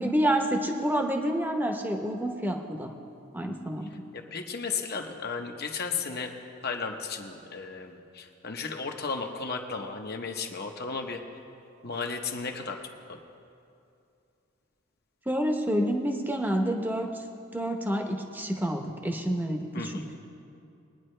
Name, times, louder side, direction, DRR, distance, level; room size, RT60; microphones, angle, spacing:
voice 1, 0.0-2.9 3.3-3.9 15.3-17.2 17.5-20.2, right 1 dB, 10° right, 3 dB, 0.9 m, -28 dB
voice 2, 4.3-6.3 6.6-11.2 11.8-12.8 13.1-13.2 19.7-20.1, left 5 dB, 50° left, 4 dB, 0.9 m, -34 dB
21.0 x 9.9 x 3.3 m, 2.6 s
head